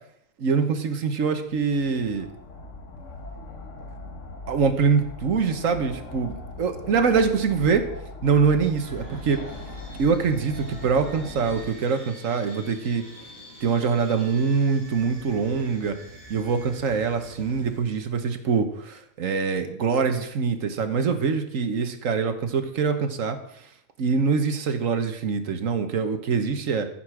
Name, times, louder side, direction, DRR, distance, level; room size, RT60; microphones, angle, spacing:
voice 1, 0.4-2.3 4.5-7.8 8.2-9.4 10.0-13.0 13.6-15.9 16.3-23.4 24.0-26.9, right 5 dB, 80° right, 8 dB, 1.5 m, -24 dB
sound 1, 1.4-11.7, left 2 dB, 70° left, 1.6 m, -40 dB
sound 2, 8.8-17.8, right 1 dB, 20° left, 3.6 m, -45 dB
14.5 x 5.9 x 6.0 m, 0.74 s
omnidirectional pair, 1.4 m